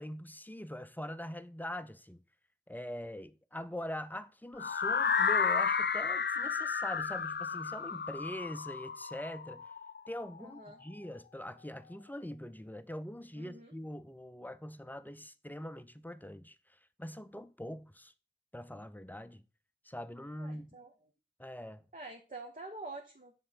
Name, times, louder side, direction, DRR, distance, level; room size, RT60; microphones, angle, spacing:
voice 1, 0.0-2.2 2.7-9.7 10.1-18.1 18.5-19.4 19.8-20.8 21.4-21.8, equal, 10° left, 0.5 m, -43 dB
sound 1, 4.6-10.5, left 6 dB, 65° left, 0.4 m, -32 dB
voice 2, 10.4-10.8 13.4-13.7 20.4-20.9 21.9-23.4, right 2 dB, 45° right, 1.0 m, -47 dB
6.7 x 3.8 x 5.8 m
wide cardioid pair, 40°, 19 cm